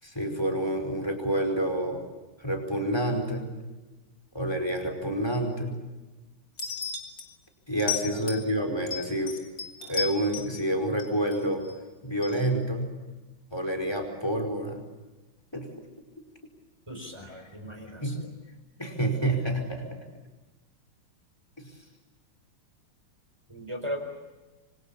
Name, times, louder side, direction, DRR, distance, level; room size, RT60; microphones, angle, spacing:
voice 1, 0.0-2.0 2.4-3.5 4.3-5.8 7.7-9.4 9.9-11.6 12.0-12.9 13.5-14.8 15.5-15.7 17.3-17.4 18.0-18.2 18.8-20.0 21.6-21.7, right 1 dB, 10° left, 4 dB, 5.0 m, -28 dB
sound 1, 6.6-7.3 7.8-8.5 8.9-10.6 11.0-11.7 12.2-12.4, left 5 dB, 60° left, 4.0 m, -34 dB
voice 2, 16.9-18.0 23.5-24.0, equal, 15° right, 4 dB, 4.4 m, -37 dB
27.5 x 25.0 x 7.2 m, 1.2 s
omnidirectional pair, 2.2 m